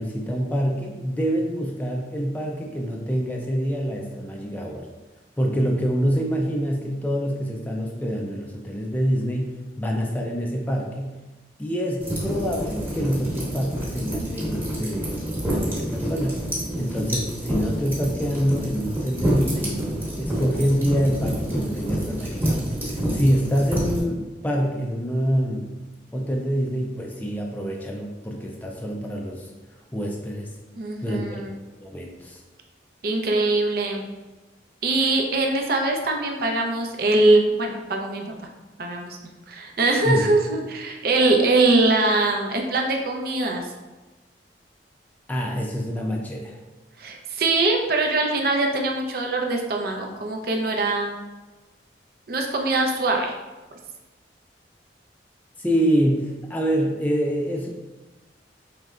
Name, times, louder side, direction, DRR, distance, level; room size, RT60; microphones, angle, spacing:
voice 1, 0.0-4.9 5.4-11.1 11.6-15.1 15.5-16.4 16.8-19.8 20.2-25.7 26.1-29.5 29.9-30.5 31.0-31.5 31.8-32.4 40.0-40.2 45.3-46.6 55.6-57.7, equal, 10° left, -1 dB, 0.4 m, -26 dB
sound 1, 12.0-24.0, equal, 10° right, 1.1 m, -28 dB
voice 2, 30.8-31.5 33.0-34.0 34.8-38.3 38.8-39.2 39.5-43.7 47.0-51.2 52.3-53.3, right 2 dB, 55° right, 1 dB, 0.6 m, -22 dB
4.9 x 3.1 x 2.3 m, 1.2 s
head